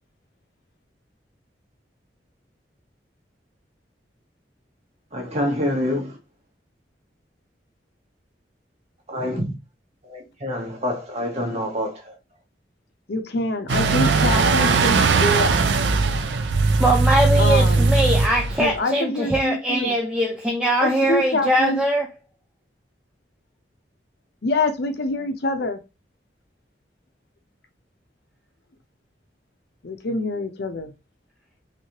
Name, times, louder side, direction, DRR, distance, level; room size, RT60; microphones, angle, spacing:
voice 1, 5.1-6.2 9.1-9.5 10.0-12.2, left 1 dB, 40° right, 1.3 m, -26 dB
voice 2, 13.1-15.5 17.4-17.9 18.6-19.9 20.8-21.8 24.4-25.8 29.8-30.9, left 2 dB, 65° left, 0.6 m, -25 dB
sound 1, 13.7-18.8, right 4 dB, 75° right, 0.4 m, -19 dB
voice 3, 16.8-22.1, right 1 dB, 5° right, 0.5 m, -21 dB
3.3 x 3.1 x 2.8 m
head